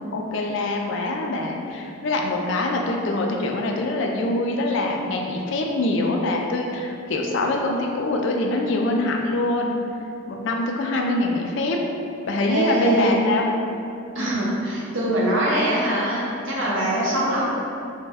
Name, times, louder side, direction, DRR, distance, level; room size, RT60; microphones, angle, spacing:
voice 1, 0.1-9.8 10.3-11.8 12.3-13.5, left 2 dB, 60° left, 1 dB, 0.3 m, -24 dB
voice 2, 12.5-13.1 14.1-17.4, right 1 dB, 65° right, -6 dB, 0.7 m, -23 dB
3.2 x 2.1 x 3.4 m, 2.6 s
head